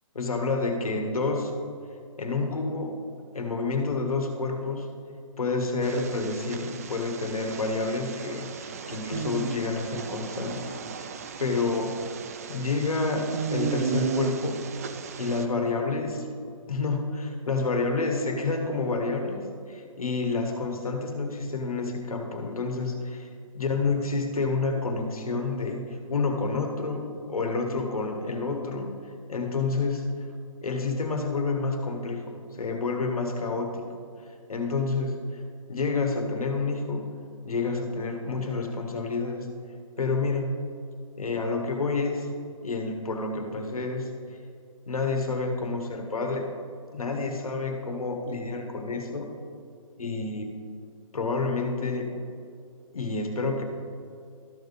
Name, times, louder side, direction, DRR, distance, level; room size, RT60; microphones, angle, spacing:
voice 1, 0.2-1.5 2.2-3.0 3.3-4.9 5.4-10.7 11.4-12.0 12.5-14.6 15.2-16.3 16.7-23.3 23.5-29.0 29.3-30.0 30.6-33.9 34.5-35.4 35.7-37.1 37.5-39.5 40.0-40.5 41.2-42.3 42.6-44.1 44.9-46.5 46.9-49.3 50.0-50.5 51.1-52.2 52.9-53.6, left 3 dB, 90° left, 4 dB, 1.6 m, -29 dB
sound 1, 5.8-15.4, right 6 dB, 25° right, 0.3 m, -35 dB
13.0 x 5.4 x 4.1 m, 2.3 s
hypercardioid pair, 155°, 18 cm